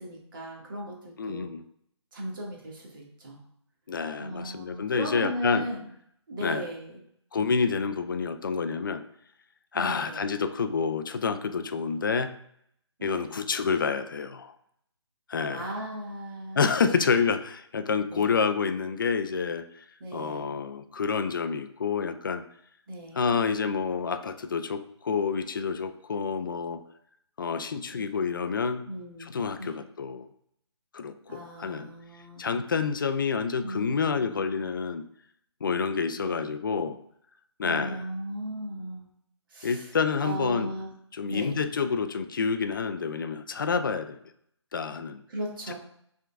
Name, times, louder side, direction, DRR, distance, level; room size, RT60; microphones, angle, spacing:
voice 1, 0.0-1.5 2.1-3.4 4.2-5.9 6.3-7.0 9.7-10.2 13.0-13.3 15.5-16.9 18.1-18.4 20.0-20.5 22.9-23.2 27.9-28.1 28.9-29.8 31.3-32.4 33.6-34.7 36.2-36.4 37.6-39.1 39.5-39.9 40.2-40.9 41.3-41.6 45.3-45.7, right 1 dB, 45° right, -2 dB, 1.6 m, -37 dB
voice 2, 1.2-1.6 3.9-5.7 6.4-6.6 7.3-9.0 9.7-12.3 13.0-14.5 15.3-15.7 16.6-19.9 20.1-22.4 23.2-26.8 27.4-28.8 29.2-30.3 30.9-31.9 32.4-35.0 35.6-37.0 37.6-38.0 39.6-40.7 41.1-44.2 44.7-45.2 45.7-45.8, left 5 dB, 45° left, 9 dB, 0.4 m, -28 dB
5.9 x 3.6 x 2.3 m, 0.70 s
figure-of-eight pair, 155°, 15 cm